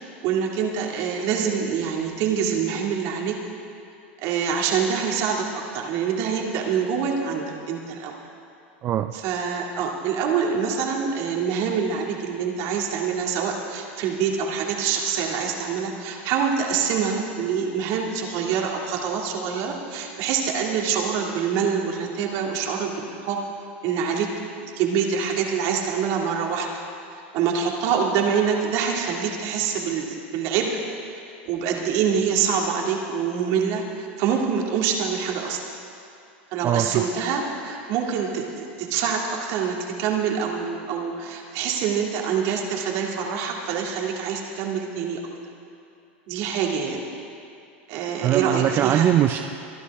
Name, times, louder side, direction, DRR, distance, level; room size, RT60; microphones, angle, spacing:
voice 1, 0.2-3.4 4.2-5.5 5.7-8.1 9.1-23.4 23.8-24.3 24.6-26.7 27.3-30.7 31.5-35.6 36.5-45.2 46.3-47.1 47.9-49.1, right 6 dB, 55° right, 0 dB, 2.2 m, -25 dB
voice 2, 8.8-9.1 36.6-37.0 48.2-49.4, right 11 dB, 40° right, 6 dB, 0.5 m, -21 dB
24.0 x 11.0 x 3.6 m, 2.5 s
hypercardioid pair, 110°, 6 cm